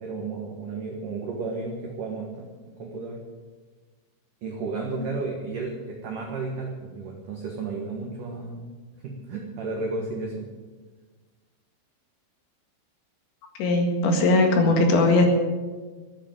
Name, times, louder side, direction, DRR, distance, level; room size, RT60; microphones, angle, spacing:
voice 1, 0.0-3.2 4.4-8.7 9.0-10.5 14.7-14.8, right 3 dB, 65° right, 0 dB, 2.2 m, -33 dB
voice 2, 13.6-15.3, left 2 dB, 65° left, 3 dB, 3.9 m, -19 dB
14.5 x 8.1 x 9.0 m, 1.4 s
omnidirectional pair, 6.0 m